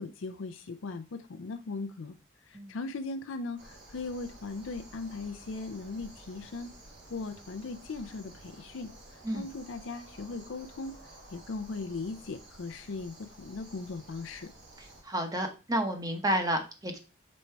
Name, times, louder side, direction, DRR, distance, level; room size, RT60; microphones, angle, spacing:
voice 1, 0.0-2.2 2.4-6.7 7.1-14.5, left 3 dB, 85° left, 0.5 m, -39 dB
sound 1, 3.6-15.0, right 1 dB, 70° right, 2.1 m, -52 dB
voice 2, 15.0-17.0, equal, 20° right, 0.9 m, -30 dB
5.3 x 4.3 x 4.5 m
head